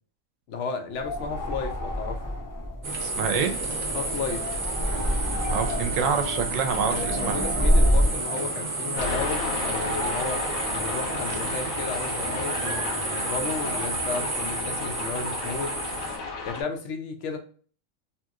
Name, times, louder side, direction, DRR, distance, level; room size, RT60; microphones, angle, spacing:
voice 1, 0.5-2.4 3.9-4.4 6.9-10.4 10.7-15.7 16.4-17.4, left 4 dB, 65° left, 5 dB, 0.9 m, -33 dB
sound 1, 0.9-8.2, equal, 25° left, 0.4 m, -27 dB
sound 2, 2.8-16.2, right 2 dB, 45° right, 0.6 m, -31 dB
voice 2, 3.0-3.6 5.5-7.4, right 6 dB, 75° right, 6 dB, 1.0 m, -27 dB
sound 3, 9.0-16.6, left 3 dB, 85° left, 1.2 m, -33 dB
2.9 x 2.8 x 2.3 m, 0.42 s
omnidirectional pair, 1.4 m